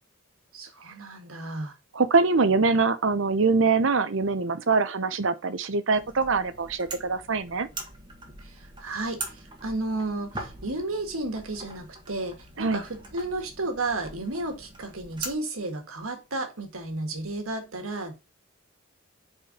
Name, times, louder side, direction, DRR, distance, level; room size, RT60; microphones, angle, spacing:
voice 1, 0.5-1.8 8.4-18.1, right 2 dB, 90° right, 1.7 m, -33 dB
voice 2, 1.9-7.7 12.6-12.8, right 4 dB, 65° right, 0.7 m, -23 dB
sound 1, 5.9-15.3, right 3 dB, 20° right, 1.4 m, -42 dB
5.0 x 4.6 x 5.2 m
head